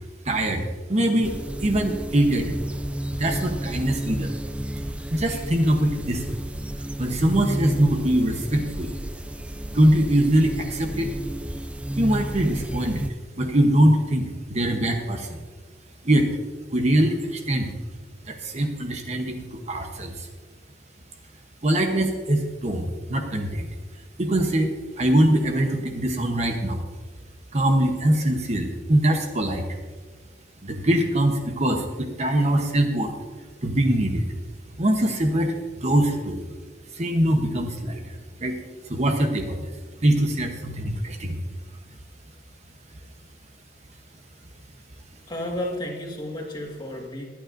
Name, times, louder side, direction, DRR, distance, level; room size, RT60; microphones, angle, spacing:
voice 1, 0.2-2.6 3.2-4.3 4.8-6.4 7.0-9.0 9.7-11.1 12.0-13.1 13.4-15.4 16.0-16.3 16.7-17.7 18.3-20.3 21.6-23.7 24.2-26.8 27.5-29.6 30.6-33.1 33.6-34.3 34.8-35.5 35.8-36.4 36.9-38.6 38.9-39.7 40.0-41.4, right 1 dB, 35° right, 4 dB, 1.0 m, -23 dB
sound 1, 1.2-13.1, right 1 dB, 5° right, 0.3 m, -32 dB
voice 2, 45.3-47.2, left 1 dB, 25° left, -1 dB, 1.8 m, -32 dB
21.5 x 9.2 x 2.6 m, 1.5 s
head